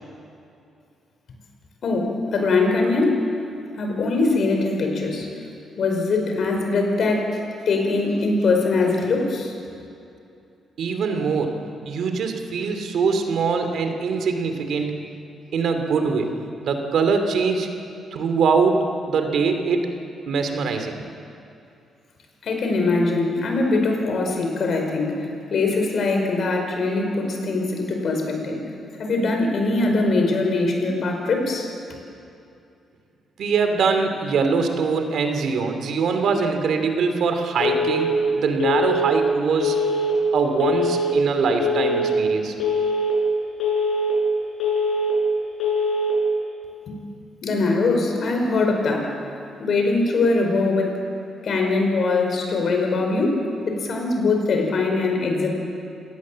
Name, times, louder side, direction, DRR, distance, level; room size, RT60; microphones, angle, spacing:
voice 1, 1.8-3.2 3.8-5.3 5.8-7.4 7.6-9.5 22.4-28.6 29.0-31.7 46.9-47.0 47.4-49.1 49.6-51.0 51.4-55.5, left 3 dB, 60° left, 3 dB, 5.0 m, -22 dB
voice 2, 10.8-11.5 11.8-14.9 15.5-16.3 16.6-17.7 18.1-19.9 20.3-21.0 33.4-38.1 38.3-39.8 40.3-42.5, right 5 dB, 70° right, 6 dB, 2.7 m, -22 dB
Telephone, 37.6-38.1 38.6-39.1 39.6-40.1 40.6-41.1 41.6-42.1 42.6-43.1 43.6-44.1 44.6-45.1 45.6-46.1, left 2 dB, 75° left, 7.0 m, -22 dB
27.5 x 18.0 x 7.5 m, 2.6 s
cardioid pair, 105°, 0 cm